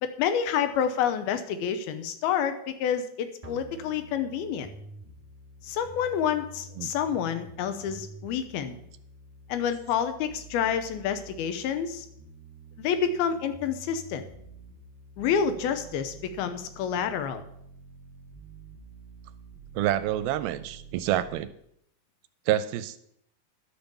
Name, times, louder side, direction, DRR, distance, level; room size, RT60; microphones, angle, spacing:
voice 1, 0.0-4.7 5.6-8.8 9.5-12.1 12.8-14.3 15.2-17.4, left 8 dB, 80° left, 9 dB, 2.8 m, -28 dB
sound 1, 3.4-21.4, right 3 dB, 60° right, 0.4 m, -48 dB
voice 2, 19.8-21.5 22.5-23.0, right 12 dB, 80° right, 13 dB, 2.3 m, -27 dB
11.5 x 7.1 x 7.0 m, 0.72 s
omnidirectional pair, 4.5 m